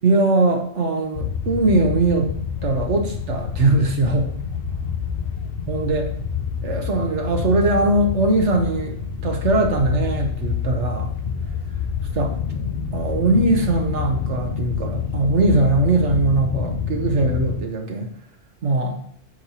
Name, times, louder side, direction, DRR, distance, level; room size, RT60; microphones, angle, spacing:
voice 1, 0.0-2.3 2.6-4.3 5.7-6.1 6.6-8.9 9.2-11.1 12.1-12.4 12.9-18.1 18.6-19.0, right 2 dB, 70° right, 3 dB, 1.5 m, -20 dB
sound 1, 1.1-17.6, left 6 dB, 55° left, 0.9 m, -27 dB
9.2 x 6.5 x 2.9 m, 0.63 s
omnidirectional pair, 1.2 m